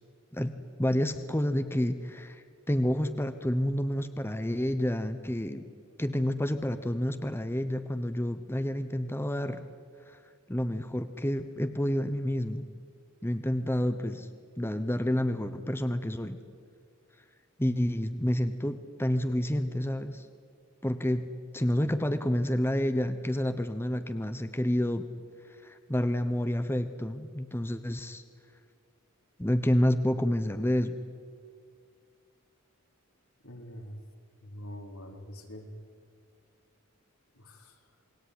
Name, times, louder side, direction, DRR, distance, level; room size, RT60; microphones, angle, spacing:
voice 1, 0.3-5.7 6.0-9.6 10.1-10.2 10.5-12.7 13.2-14.3 14.6-16.4 17.6-20.3 20.8-21.3 21.5-25.1 25.5-28.2 29.4-31.0, equal, 10° left, 10 dB, 0.9 m, -29 dB
voice 2, 33.4-34.0 34.4-35.7 37.3-37.8, equal, 80° left, 3 dB, 4.2 m, -44 dB
28.0 x 21.0 x 9.8 m, 2.2 s
head